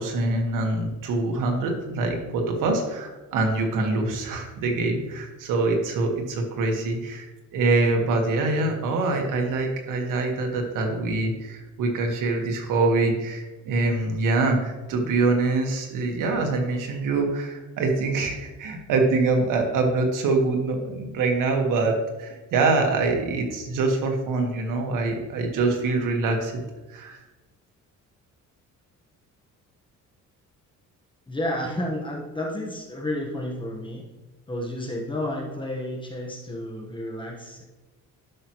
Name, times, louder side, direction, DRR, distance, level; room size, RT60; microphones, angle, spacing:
voice 1, 0.0-7.3 7.5-26.6 26.9-27.2, right 3 dB, 85° right, 2 dB, 1.7 m, -24 dB
voice 2, 31.3-34.0 34.5-37.6, left 1 dB, 15° left, -1 dB, 1.4 m, -31 dB
12.0 x 6.0 x 3.1 m, 1.1 s
cardioid pair, 125°, 31 cm